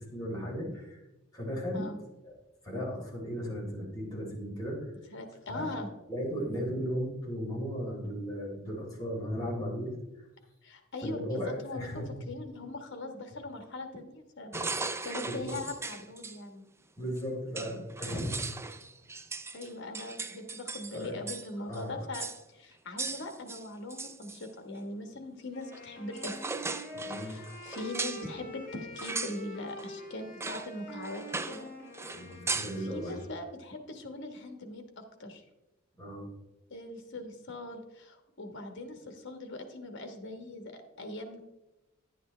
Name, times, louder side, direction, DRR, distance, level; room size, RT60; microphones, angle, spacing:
voice 1, 0.1-1.0 1.3-1.9 2.2-2.3 2.6-4.9 5.5-5.7 6.1-10.3 11.0-12.1 14.5-14.8 15.2-15.6 17.0-18.5 20.9-21.2 21.7-22.1 26.9-27.4 32.1-33.2 36.0-36.2, equal, 20° left, -5 dB, 3.8 m, -36 dB
voice 2, 5.1-5.9 10.6-14.5 15.0-16.6 19.5-26.4 27.1-31.7 32.8-35.4 36.7-41.4, left 2 dB, 60° left, 6 dB, 1.4 m, -41 dB
sound 1, 14.5-16.4 17.2-17.3 17.6-21.5 21.7-21.8 22.1-22.4 23.0-24.5 25.7-25.9 26.1-28.3 29.0-29.4 29.8-29.9 30.4-30.7 31.0-31.7 31.9-32.8, right 4 dB, 10° right, 0.4 m, -38 dB
Wind instrument woodwind instrument, 25.5-33.4, left 1 dB, 45° left, 3.1 m, -46 dB
11.0 x 9.5 x 3.3 m, 0.97 s
head